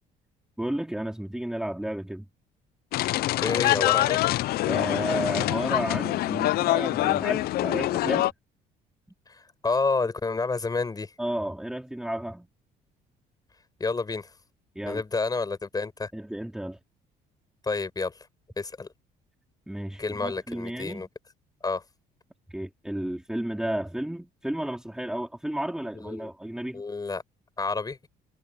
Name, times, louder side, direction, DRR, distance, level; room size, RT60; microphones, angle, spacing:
voice 1, 0.6-2.2 4.7-8.3 11.2-12.5 14.7-15.0 16.1-16.8 19.7-21.0 22.5-26.8, right 1 dB, 5° right, 2.9 m, -32 dB
sound 1, 2.9-8.3, left 16 dB, 65° left, 0.4 m, -25 dB
voice 2, 3.4-4.2 9.3-11.1 13.8-14.3 14.9-16.1 17.6-18.3 18.6-18.9 20.0-21.1 21.6-21.8 26.0-26.3 26.7-27.2 27.6-28.0, left 4 dB, 20° left, 7.9 m, -29 dB
cardioid pair, 110°, 17 cm